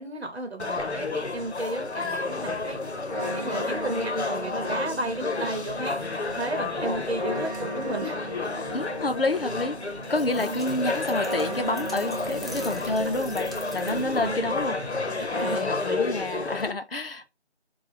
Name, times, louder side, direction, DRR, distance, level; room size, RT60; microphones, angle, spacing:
voice 1, 0.0-2.8 3.3-6.0 6.3-8.8 10.4-10.6 12.5-12.7 13.8-14.6 15.2-16.0 16.3-16.5, right 2 dB, 70° right, 0.9 m, -34 dB
sound 1, 0.6-16.7, left 3 dB, 90° left, 0.8 m, -31 dB
sound 2, 2.3-15.6, right 1 dB, 40° right, 0.7 m, -38 dB
voice 2, 6.8-7.1 8.7-9.8 10.1-14.8 15.3-17.3, left 2 dB, 60° left, 0.6 m, -29 dB
sound 3, 10.1-14.3, equal, ahead, 0.3 m, -45 dB
3.1 x 2.3 x 3.1 m
figure-of-eight pair, 175°, 33 cm